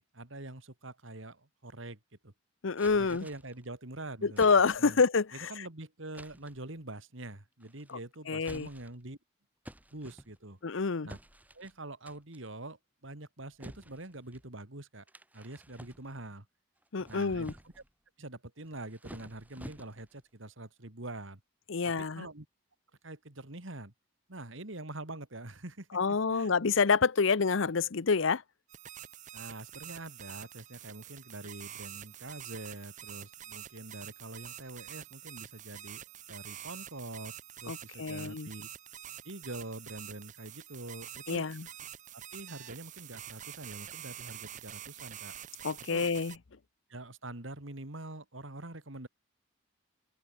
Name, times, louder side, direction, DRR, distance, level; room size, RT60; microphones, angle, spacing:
voice 1, 0.0-2.0 2.2-2.3 2.9-4.4 4.8-5.0 5.3-9.2 9.9-10.6 11.0-11.2 11.5-15.0 15.3-16.5 17.1-17.8 18.2-21.4 21.8-22.5 23.0-23.9 24.3-26.5 29.3-36.0 36.3-38.7 39.2-41.5 42.1-45.3 45.9-46.1 46.9-49.1, right 2 dB, 70° right, 2.7 m, -45 dB
voice 2, 2.6-3.2 4.2-5.5 8.3-8.7 10.6-11.1 16.9-17.5 21.7-22.2 25.9-28.4 37.7-38.5 41.3-41.7 45.6-46.3, left 5 dB, 70° left, 0.7 m, -27 dB
sound 1, 2.8-3.6 4.4-5.0 6.1-6.6 7.6-8.0 8.4-9.1 9.6-10.6 11.1-11.7 12.1-12.5 13.6-14.5 15.1-16.3 16.8-17.9 18.6-20.2, equal, 10° right, 7.3 m, -51 dB
sound 2, 28.7-46.4, right 11 dB, 35° right, 0.7 m, -47 dB
open air
head